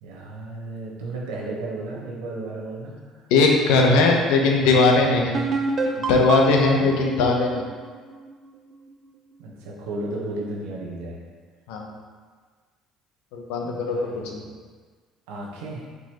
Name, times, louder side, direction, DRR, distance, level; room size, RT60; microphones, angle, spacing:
voice 1, 0.0-3.3 6.7-7.1 9.4-11.2 13.6-14.3 15.3-15.9, right 2 dB, 90° right, -2 dB, 0.9 m, -34 dB
voice 2, 3.3-5.5 6.0-7.6 11.7-11.9 13.3-14.5, left 3 dB, 85° left, 1 dB, 0.7 m, -19 dB
sound 1, 5.3-8.9, right 3 dB, 45° right, 0.5 m, -28 dB
4.6 x 3.9 x 2.9 m, 1.5 s
supercardioid pair, 80°, 0 cm